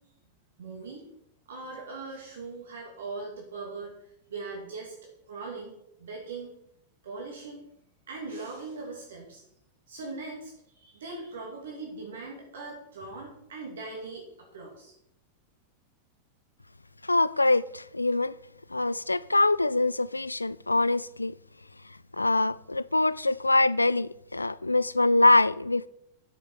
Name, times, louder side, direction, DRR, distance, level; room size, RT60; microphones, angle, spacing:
voice 1, 0.6-1.1 1.5-3.9 4.3-4.9 5.3-6.5 7.0-7.6 8.1-9.4 9.9-14.2 14.5-14.9, right 3 dB, 65° right, 2.6 m, -40 dB
voice 2, 17.0-18.4 18.7-21.3 22.2-25.9, left 2 dB, 85° left, 0.3 m, -24 dB
13.0 x 6.7 x 4.7 m
figure-of-eight pair, 90°, 0 cm